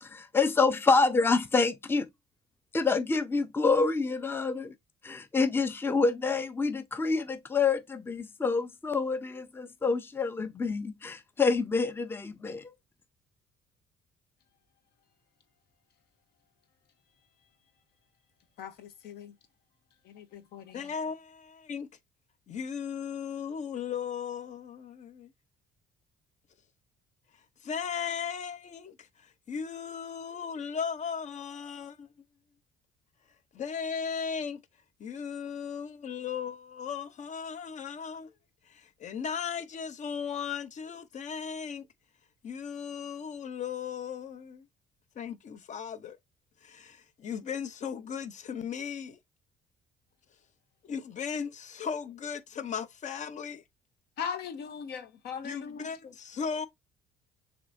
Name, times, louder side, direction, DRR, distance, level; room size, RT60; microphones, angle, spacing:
voice 1, 0.0-2.1 2.7-4.7 5.0-12.7, left 4 dB, 15° left, 0.6 m, -27 dB
voice 2, 18.6-19.3 20.1-20.9 54.2-56.1, left 7 dB, 70° left, 1.0 m, -40 dB
voice 3, 20.7-21.9 22.5-25.3 27.6-32.1 33.5-34.6 35.0-38.3 38.7-41.9 42.4-44.7 45.2-46.2 46.6-49.2 50.8-53.6 55.4-56.7, left 7 dB, 45° left, 0.8 m, -36 dB
6.6 x 2.9 x 2.6 m
cardioid pair, 110°, 17 cm